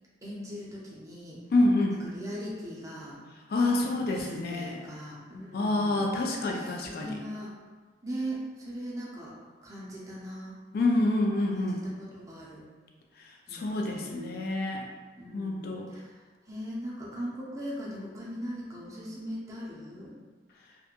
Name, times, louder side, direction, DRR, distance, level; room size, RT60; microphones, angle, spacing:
voice 1, 0.2-1.4 2.1-3.2 4.0-6.0 6.5-7.5 8.0-9.3 9.6-10.6 11.5-12.6 13.5-14.1 15.2-16.1 16.5-20.1, equal, 20° right, -6 dB, 0.5 m, -39 dB
voice 2, 1.5-2.0 3.5-4.8 5.5-7.2 10.7-11.8 13.5-14.9 15.3-15.9, left 2 dB, 60° left, 1 dB, 0.3 m, -27 dB
2.4 x 2.1 x 2.9 m, 1.4 s
head